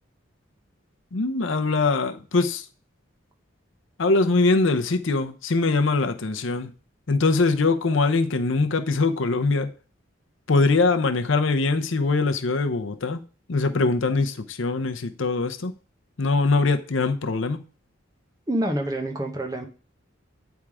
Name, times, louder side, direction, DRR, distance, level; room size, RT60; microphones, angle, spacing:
voice 1, 1.1-2.7 4.0-6.7 7.1-9.7 10.5-13.2 13.5-15.8 16.2-17.6, left 3 dB, 70° left, 0.7 m, -22 dB
voice 2, 18.5-19.7, right 1 dB, 15° right, 0.9 m, -27 dB
8.7 x 3.6 x 4.8 m
head